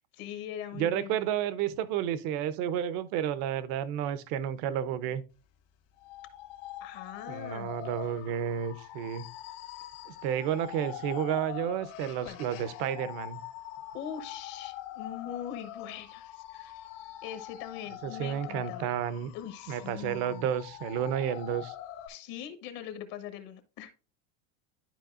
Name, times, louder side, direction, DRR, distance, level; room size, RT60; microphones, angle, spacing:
voice 1, 0.1-1.2 6.8-7.7 12.2-12.4 13.9-16.8 17.2-18.9 19.3-20.5 22.1-23.9, left 10 dB, 50° left, 1.1 m, -42 dB
voice 2, 0.7-5.2 7.3-9.3 10.1-13.4 18.0-19.3 19.7-21.7, right 9 dB, 45° right, 0.7 m, -31 dB
sound 1, 6.0-22.1, left 12 dB, 65° left, 1.8 m, -44 dB
12.0 x 4.6 x 2.4 m
supercardioid pair, 155°, 40 cm